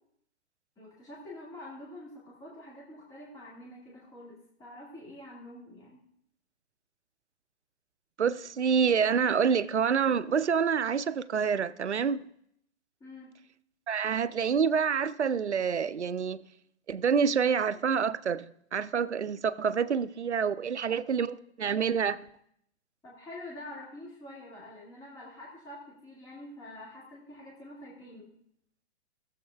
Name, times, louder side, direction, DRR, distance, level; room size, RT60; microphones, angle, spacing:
voice 1, 0.8-6.0 13.0-13.3 23.0-28.3, left 1 dB, 10° left, 1.8 m, -46 dB
voice 2, 8.2-12.3 13.9-16.4 16.9-22.2, right 6 dB, 90° right, 0.5 m, -27 dB
16.0 x 7.3 x 2.2 m
figure-of-eight pair, 115°, 33 cm